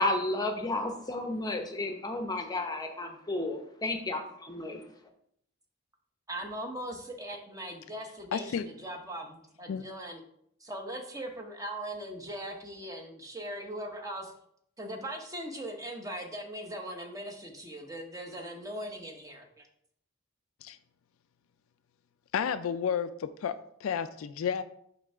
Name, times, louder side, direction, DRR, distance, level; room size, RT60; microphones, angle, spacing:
voice 1, 0.0-4.8, left 2 dB, 20° left, 5 dB, 0.7 m, -32 dB
voice 2, 6.3-10.2 10.6-14.3 14.8-19.7, right 1 dB, 15° right, 3 dB, 0.8 m, -40 dB
voice 3, 8.3-8.7 9.7-9.8 20.6-20.8 22.3-24.6, left 7 dB, 70° left, 11 dB, 0.3 m, -31 dB
6.0 x 3.2 x 5.4 m, 0.71 s
head